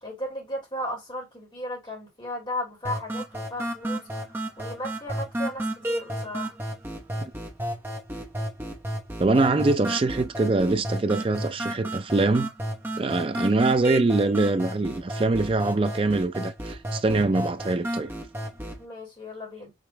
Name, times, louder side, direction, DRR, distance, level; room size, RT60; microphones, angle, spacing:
voice 1, 0.0-4.1 4.6-6.5 18.8-19.7, left 1 dB, 25° left, 2.1 m, -35 dB
sound 1, 2.8-18.8, right 1 dB, 10° right, 0.8 m, -32 dB
voice 2, 9.2-12.5 13.0-18.1, right 3 dB, 30° right, 0.4 m, -23 dB
5.1 x 3.0 x 3.2 m
head